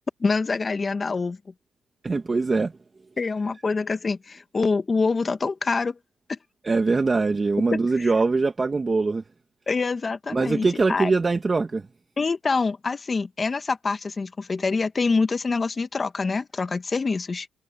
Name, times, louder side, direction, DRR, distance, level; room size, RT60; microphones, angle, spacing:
voice 1, 0.2-1.4 3.2-6.0 6.3-6.4 7.7-8.1 9.7-11.1 12.2-17.5, left 4 dB, 30° left, 1.7 m, -25 dB
voice 2, 2.0-2.7 6.6-9.2 10.3-11.9, right 3 dB, 30° right, 1.9 m, -22 dB
cardioid pair, 90°, 0 cm